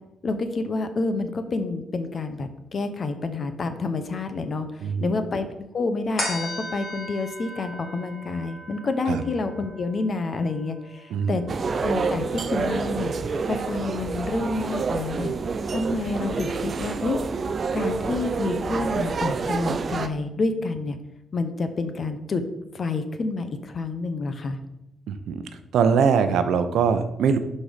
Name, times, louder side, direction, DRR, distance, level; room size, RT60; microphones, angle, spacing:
voice 1, 0.2-4.7 5.0-11.4 11.8-13.1 13.5-15.3 15.7-17.2 17.7-21.0 21.3-22.4 22.7-24.6, left 3 dB, 35° left, 9 dB, 0.8 m, -28 dB
voice 2, 4.8-5.1 9.1-9.2 11.1-11.4 25.1-25.4 25.7-27.4, right 6 dB, 70° right, 9 dB, 0.8 m, -22 dB
sound 1, 6.2-12.9 13.4-13.5, left 1 dB, 15° left, 1.9 m, -38 dB
sound 2, 11.5-20.1, right 4 dB, 35° right, 0.5 m, -28 dB
11.5 x 4.3 x 5.1 m, 0.93 s
cardioid pair, 155°, 0 cm